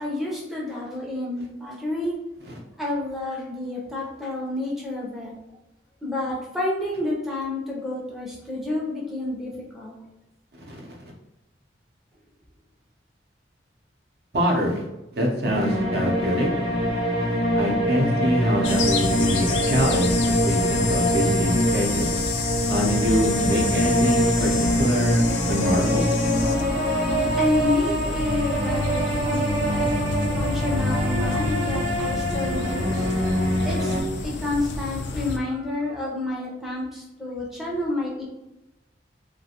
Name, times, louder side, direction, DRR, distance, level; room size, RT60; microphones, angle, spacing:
voice 1, 0.0-2.1 2.8-5.3 6.0-9.9 27.4-29.9 30.3-33.1 33.6-38.2, left 2 dB, ahead, -4 dB, 0.5 m, -29 dB
voice 2, 10.7-11.0 14.3-14.8 15.1-16.5 17.6-22.1 22.7-24.5 24.8-26.1, equal, 65° right, -1 dB, 0.6 m, -24 dB
sound 1, 15.4-34.0, equal, 90° right, 0.9 m, -24 dB
sound 2, 18.6-35.4, left 4 dB, 75° left, 0.3 m, -30 dB
2.4 x 2.2 x 2.7 m, 0.94 s
head